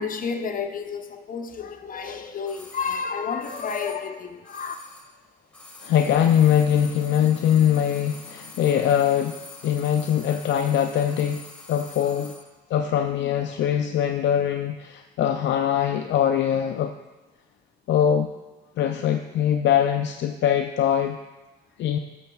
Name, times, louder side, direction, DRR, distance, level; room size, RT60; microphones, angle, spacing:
voice 1, 0.0-4.7, left 5 dB, 45° left, 0.8 m, -31 dB
sound 1, 2.4-5.2 5.5-12.5 12.7-12.8, left 3 dB, 5° left, 1.7 m, -45 dB
voice 2, 5.8-11.4 11.7-12.3 12.7-16.9 17.9-18.3 18.8-21.2 21.8-22.0, left 9 dB, 65° left, 0.4 m, -22 dB
13.0 x 6.3 x 2.3 m
cardioid pair, 90°, 20 cm